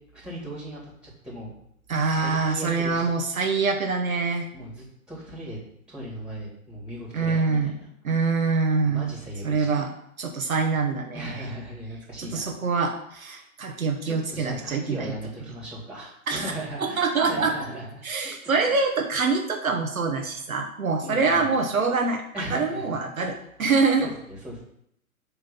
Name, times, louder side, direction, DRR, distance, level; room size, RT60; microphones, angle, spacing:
voice 1, 0.1-1.5 1.9-3.1 4.5-5.6 5.9-7.9 8.8-9.9 11.1-12.6 13.2-13.5 14.0-18.3 18.7-18.8 21.0-21.5 22.3-22.9 23.6-24.6, right 1 dB, ahead, -5 dB, 3.1 m, -38 dB
voice 2, 1.9-4.4 7.1-7.7 8.0-9.1 9.4-9.9 10.2-11.3 12.2-15.1 16.3-16.5 16.8-17.5 18.0-22.2 22.5-24.1, right 4 dB, 70° right, 3 dB, 1.2 m, -25 dB
8.1 x 3.7 x 5.6 m, 0.73 s
figure-of-eight pair, 110°, 43 cm